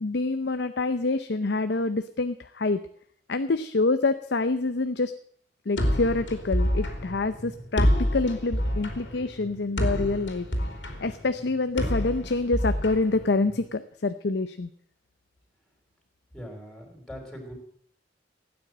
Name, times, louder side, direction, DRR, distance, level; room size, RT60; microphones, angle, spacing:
voice 1, 0.0-2.8 3.3-5.1 5.7-10.5 11.0-14.7, left 3 dB, 65° left, 10 dB, 0.7 m, -26 dB
sound 1, 5.8-13.7, equal, 80° left, 3.1 m, -28 dB
voice 2, 16.3-17.5, equal, 5° left, 1 dB, 4.2 m, -41 dB
16.0 x 9.6 x 7.6 m, 0.63 s
head